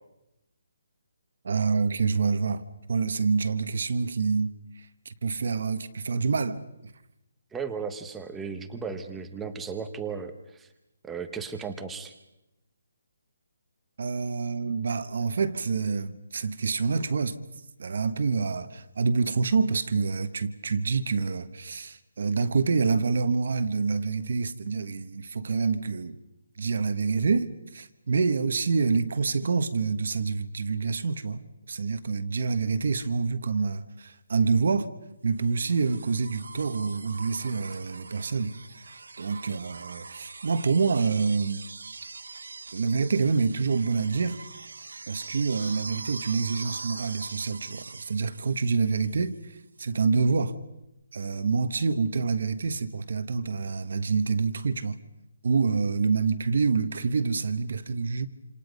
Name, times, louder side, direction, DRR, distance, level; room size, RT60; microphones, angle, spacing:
voice 1, 1.4-2.6 2.9-4.5 5.0-6.6 14.0-17.4 17.8-26.2 26.6-34.9 35.2-38.5 39.2-41.6 42.7-44.4 45.1-50.5 51.1-55.0 55.4-58.3, right 4 dB, 45° right, 1.2 m, -27 dB
voice 2, 7.5-10.7 11.1-12.1, right 5 dB, 5° right, 0.9 m, -35 dB
sound 1, 35.4-49.4 50.8-50.9, right 4 dB, 90° right, 2.2 m, -43 dB
28.0 x 27.0 x 5.3 m
hypercardioid pair, 180°, 0 cm